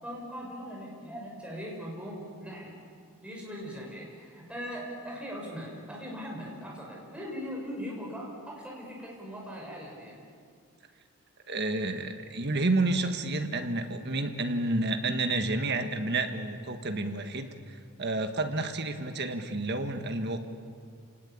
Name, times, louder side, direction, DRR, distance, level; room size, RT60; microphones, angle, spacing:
voice 1, 0.0-2.8 3.2-10.1, equal, 5° right, -3 dB, 6.2 m, -40 dB
voice 2, 11.5-17.5 18.0-20.4, right 2 dB, 50° right, 6 dB, 1.7 m, -30 dB
30.0 x 19.5 x 8.6 m, 2.2 s
head